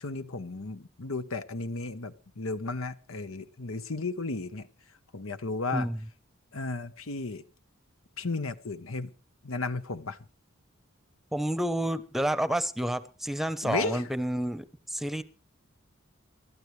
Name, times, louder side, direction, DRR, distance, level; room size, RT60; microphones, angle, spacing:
voice 1, 0.0-4.7 5.1-5.9 6.5-7.4 8.2-9.1 9.4-10.2 13.6-14.1, left 3 dB, 90° left, 1.1 m, -34 dB
voice 2, 11.3-15.2, right 1 dB, ahead, 0.8 m, -30 dB
26.5 x 12.5 x 3.3 m
head